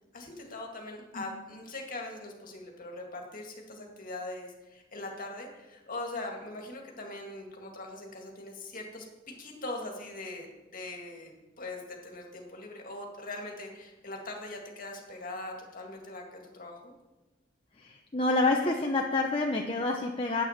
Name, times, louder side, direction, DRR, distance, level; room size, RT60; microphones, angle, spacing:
voice 1, 0.1-10.5 10.7-16.9, left 2 dB, 45° left, 1 dB, 2.0 m, -41 dB
voice 2, 17.8-20.4, left 2 dB, 30° left, 0 dB, 0.8 m, -28 dB
9.5 x 8.4 x 5.8 m, 1.1 s
head